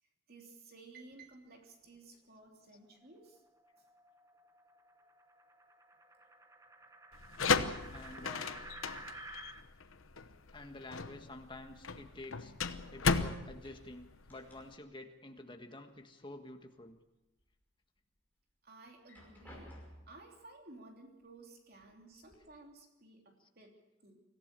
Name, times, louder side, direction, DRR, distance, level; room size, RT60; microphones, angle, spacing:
voice 1, 0.3-3.4 3.8-3.9 18.6-19.8 20.1-24.2, right 2 dB, 50° right, 1 dB, 3.2 m, -56 dB
sound 1, 2.9-9.6, right 2 dB, 15° right, 0.9 m, -53 dB
sound 2, 7.1-14.7, left 4 dB, 85° left, 1.0 m, -35 dB
voice 2, 7.4-8.6 10.5-12.5 12.9-17.0 23.4-23.5, left 2 dB, 25° left, 5 dB, 1.6 m, -49 dB
sound 3, 12.1-13.1 13.4-15.0 15.3-16.3 16.7-17.5 18.0-18.1 18.9-20.3 21.2-21.3 21.7-22.3, equal, 10° left, 5.7 m, -57 dB
25.0 x 15.0 x 6.9 m, 0.98 s
head